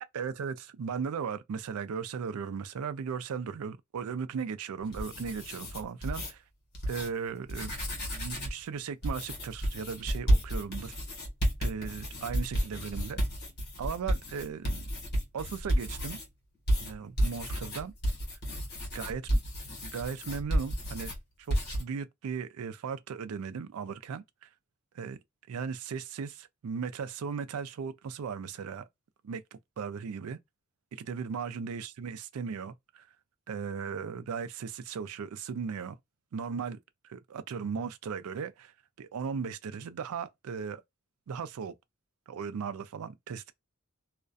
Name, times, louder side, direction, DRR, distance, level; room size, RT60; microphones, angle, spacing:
voice 1, 0.1-6.4 6.9-7.8 8.1-11.0 11.6-13.2 13.8-14.9 15.3-16.2 16.8-17.9 18.9-19.2 19.8-21.1 21.5-24.5 24.9-25.2 25.5-28.9 29.2-30.4 31.0-33.1 33.5-36.0 36.3-36.8 37.0-38.7 39.0-40.8 41.3-41.7 42.3-43.5, right 6 dB, 85° right, 0.4 m, -37 dB
sound 1, 4.8-6.3 6.7-7.1 7.4-8.6 9.0-16.3 16.7-21.2 21.5-21.8, equal, 50° left, 1.1 m, -31 dB
2.4 x 2.1 x 2.4 m
head